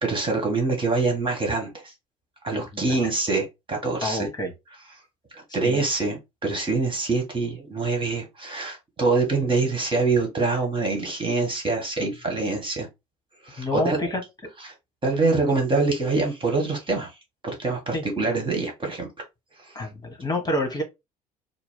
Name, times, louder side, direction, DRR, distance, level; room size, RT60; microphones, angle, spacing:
voice 1, 0.0-1.9 2.4-4.3 5.3-12.9 13.4-14.1 14.6-14.7 15.0-17.1 17.4-19.1, right 3 dB, 25° right, 1.7 m, -25 dB
voice 2, 2.7-3.1 4.0-4.5 5.5-5.8 12.0-12.1 13.6-14.2 17.9-18.0 19.7-20.8, left 1 dB, 20° left, 1.4 m, -28 dB
4.5 x 2.0 x 3.7 m
hypercardioid pair, 60°, 19 cm